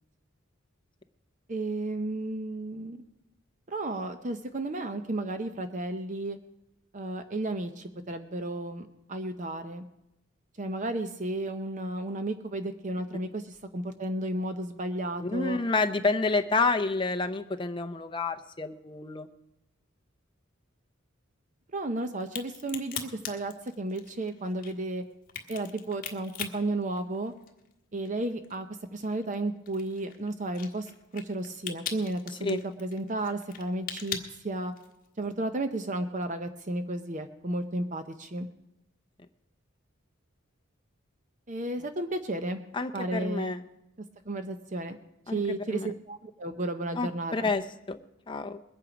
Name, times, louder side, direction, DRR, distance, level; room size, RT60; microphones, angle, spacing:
voice 1, 1.5-3.0 3.7-6.4 6.9-9.8 10.6-15.6 21.7-25.0 25.5-27.3 27.9-28.7 28.9-34.2 34.4-34.7 35.2-38.5 41.5-42.6 42.9-43.5 44.3-45.0 45.3-47.5, right 2 dB, 35° right, 8 dB, 0.7 m, -33 dB
voice 2, 15.2-19.3 32.4-32.6 42.7-43.6 45.3-45.4 45.7-45.9 47.0-48.0 48.3-48.6, left 3 dB, 25° left, 6 dB, 0.6 m, -29 dB
Crack, 22.2-27.7 28.1-35.1, left 8 dB, 40° left, 1.3 m, -40 dB
21.0 x 8.9 x 5.1 m, 0.88 s
head